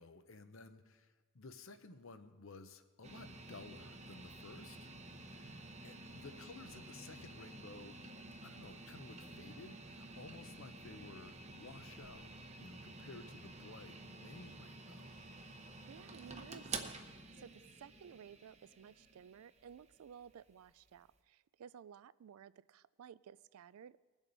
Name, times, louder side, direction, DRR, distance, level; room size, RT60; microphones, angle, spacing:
voice 1, 0.0-4.9 5.3-8.0 8.4-12.3 12.6-15.1, left 3 dB, 65° left, 10 dB, 0.8 m, -55 dB
sound 1, 3.0-21.1, right 3 dB, 30° right, 0.8 m, -51 dB
voice 2, 15.9-24.0, right 8 dB, 85° right, 19 dB, 0.3 m, -56 dB
21.0 x 7.2 x 4.1 m, 1.3 s
head